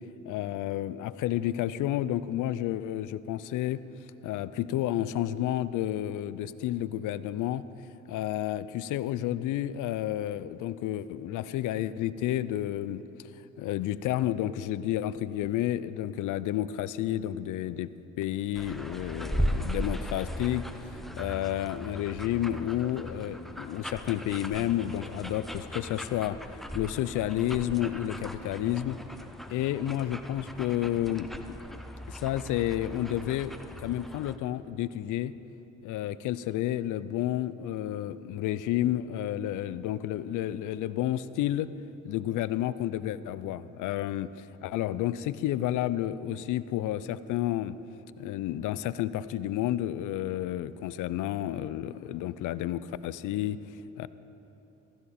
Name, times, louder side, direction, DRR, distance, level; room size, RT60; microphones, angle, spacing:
voice 1, 0.2-3.8 4.2-7.7 8.1-13.0 13.6-17.9 18.2-20.7 21.1-26.4 26.7-29.0 29.5-31.6 32.1-35.3 35.8-41.7 42.0-47.8 48.2-53.6 54.0-54.1, left 12 dB, 85° left, 16 dB, 0.5 m, -31 dB
sound 1, 18.5-34.4, equal, ahead, 0.8 m, -38 dB
15.5 x 15.0 x 4.3 m, 3.0 s
cardioid pair, 90°, 30 cm